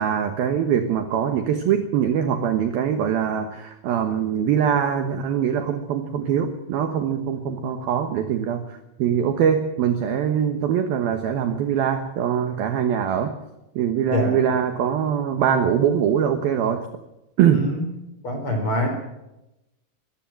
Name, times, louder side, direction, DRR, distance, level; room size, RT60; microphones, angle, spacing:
voice 1, 0.0-13.4 13.8-16.9 17.4-17.7, right 8 dB, 70° right, 7 dB, 2.4 m, -22 dB
voice 2, 17.5-17.9 18.2-18.9, left 1 dB, 30° left, 4 dB, 4.4 m, -25 dB
23.5 x 15.5 x 7.6 m, 0.92 s
omnidirectional pair, 5.8 m